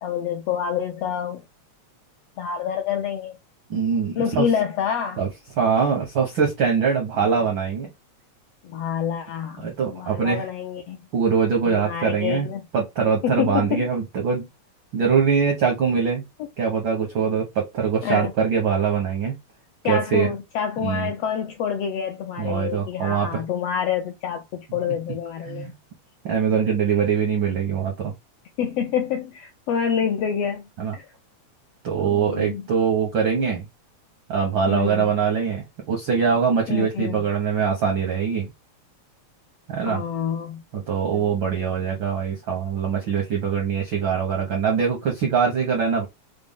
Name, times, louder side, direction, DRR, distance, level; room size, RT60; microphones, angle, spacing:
voice 1, 0.0-1.4 2.4-3.4 4.2-5.3 7.2-7.3 8.6-11.0 11.7-12.6 13.2-13.9 16.4-16.5 18.0-18.3 19.8-25.7 28.6-30.6 30.9-31.1 32.0-32.7 34.7-35.2 36.7-37.2 39.8-40.6 41.1-41.6, left 8 dB, 80° left, 1.4 m, -27 dB
voice 2, 3.7-4.5 5.2-5.3 5.6-7.9 9.6-10.5 11.1-12.5 12.7-14.5 14.9-16.2 16.6-19.3 19.8-20.3 20.8-21.1 22.4-23.4 25.5-25.7 26.2-28.1 30.8-30.9 31.8-33.6 34.3-38.5 39.7-40.0 40.7-46.1, right 6 dB, 75° right, 1.1 m, -23 dB
4.9 x 2.0 x 3.5 m
omnidirectional pair, 3.4 m